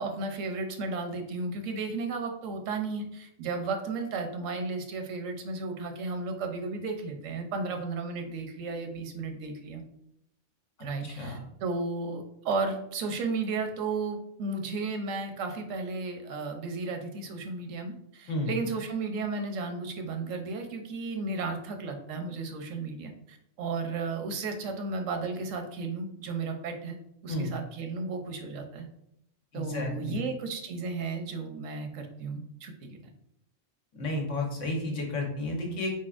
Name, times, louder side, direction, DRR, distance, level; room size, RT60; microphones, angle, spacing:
voice 1, 0.0-9.8 10.8-27.0 27.2-28.9 29.5-33.0, right 3 dB, 80° right, 5 dB, 1.1 m, -34 dB
voice 2, 11.0-11.4 18.3-18.5 27.3-27.5 29.5-30.2 33.9-35.9, left 2 dB, 70° left, -1 dB, 1.4 m, -32 dB
4.2 x 4.2 x 2.4 m, 0.77 s
omnidirectional pair, 1.3 m